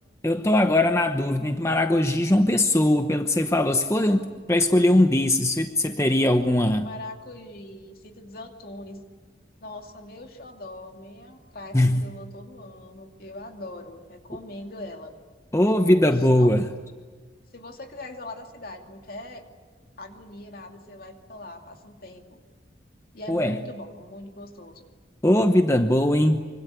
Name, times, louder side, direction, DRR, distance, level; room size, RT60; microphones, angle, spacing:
voice 1, 0.2-6.9 11.7-12.1 15.5-16.7 23.3-23.6 25.2-26.4, left 1 dB, 15° left, 6 dB, 0.9 m, -20 dB
voice 2, 6.8-9.0 9.6-15.1 15.8-16.5 17.5-19.4 20.0-22.4 23.1-24.8, left 1 dB, 55° left, 4 dB, 2.6 m, -41 dB
25.0 x 25.0 x 8.4 m, 1.4 s
head